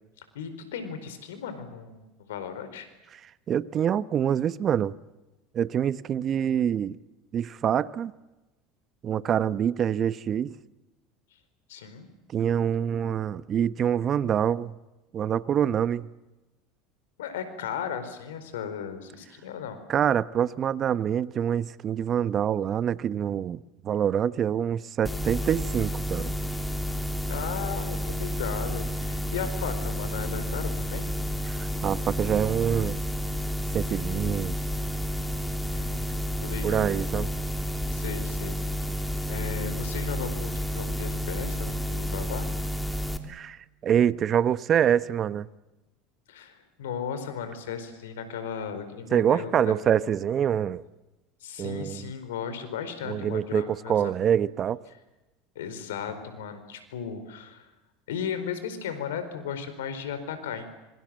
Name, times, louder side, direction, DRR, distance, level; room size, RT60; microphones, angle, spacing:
voice 1, 0.3-2.9 11.7-12.1 17.2-19.8 27.3-31.1 35.6-36.9 37.9-38.6 39.3-42.5 46.3-49.7 51.4-54.1 55.5-57.7 58.1-60.7, left 7 dB, 80° left, 4.5 m, -36 dB
voice 2, 3.5-4.9 5.5-7.0 7.3-8.1 9.0-10.6 12.3-14.7 15.1-16.1 19.9-26.3 31.5-33.0 33.7-34.6 36.6-37.3 43.2-45.5 49.1-50.8 51.6-52.1 53.0-54.8, right 9 dB, 40° right, 1.0 m, -26 dB
sound 1, 25.0-43.2, equal, 10° left, 3.0 m, -30 dB
26.0 x 24.0 x 7.7 m
hypercardioid pair, 80°, 0 cm